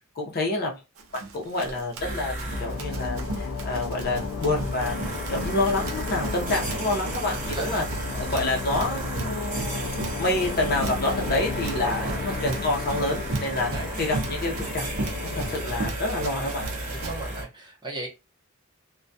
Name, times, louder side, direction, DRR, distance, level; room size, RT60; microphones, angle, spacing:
voice 1, 0.2-0.8 1.3-2.3 2.6-5.0 5.3-7.8 8.2-9.8 10.2-13.7 14.0-15.1 15.3-16.7, left 2 dB, 45° left, 0.6 m, -28 dB
Run, 1.0-17.1, right 2 dB, 70° right, 0.5 m, -36 dB
sound 1, 2.0-17.4, right 1 dB, 40° right, 1.1 m, -34 dB
sound 2, 2.5-15.8, left 5 dB, 85° left, 0.3 m, -35 dB
voice 2, 7.4-7.8 11.8-12.3 13.5-13.9 16.9-18.1, right 3 dB, 20° right, 0.7 m, -36 dB
2.2 x 2.2 x 2.6 m
head